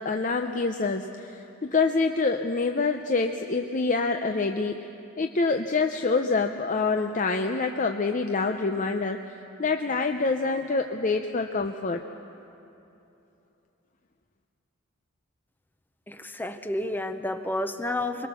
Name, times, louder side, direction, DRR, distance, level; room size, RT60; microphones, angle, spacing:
voice 1, 0.0-4.9 5.2-12.0, left 4 dB, 35° left, 5 dB, 0.6 m, -26 dB
voice 2, 16.1-18.3, left 1 dB, 10° left, 8 dB, 0.8 m, -30 dB
23.5 x 21.5 x 6.9 m, 2.9 s
head